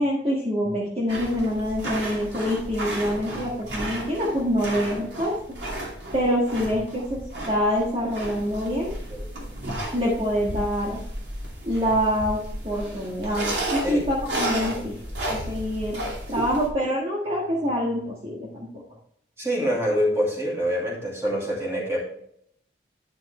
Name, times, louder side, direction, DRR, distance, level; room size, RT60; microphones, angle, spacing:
voice 1, 0.0-5.4 6.1-8.9 9.9-11.0 11.6-14.9 15.3-16.0 16.3-18.7, equal, 30° right, -5 dB, 1.7 m, -25 dB
sound 1, 1.1-16.7, right 1 dB, 70° right, 2.5 m, -33 dB
voice 2, 8.7-9.3 13.8-14.0 14.6-14.9 19.4-22.0, equal, 15° right, -4 dB, 2.6 m, -26 dB
10.5 x 5.9 x 3.3 m, 0.69 s
head